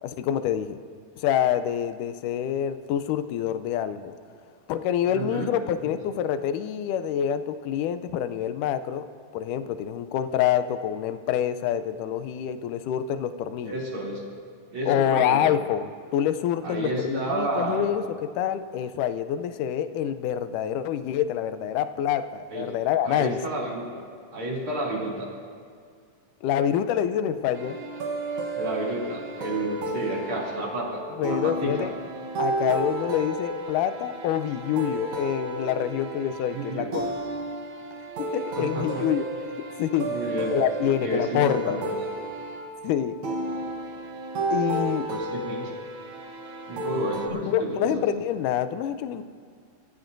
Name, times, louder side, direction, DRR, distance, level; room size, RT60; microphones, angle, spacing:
voice 1, 0.0-0.8 1.2-4.1 4.7-9.1 9.3-13.8 14.9-23.4 26.4-27.8 31.2-31.9 32.4-37.1 38.2-39.2 39.8-40.2 40.5-41.8 42.8-43.2 44.5-45.1 47.4-49.2, left 10 dB, 80° left, 11 dB, 2.1 m, -26 dB
voice 2, 5.1-5.5 13.6-14.2 14.7-15.5 16.6-17.9 22.5-22.7 23.0-24.0 24.3-25.3 28.5-31.9 36.5-36.9 38.5-39.0 40.0-40.5 40.8-41.9 45.1-45.7 46.7-48.1, right 1 dB, 40° right, -4 dB, 3.5 m, -31 dB
sound 1, 27.5-47.3, right 2 dB, 65° right, 1.2 m, -32 dB
26.0 x 14.5 x 2.6 m, 2.1 s
omnidirectional pair, 3.8 m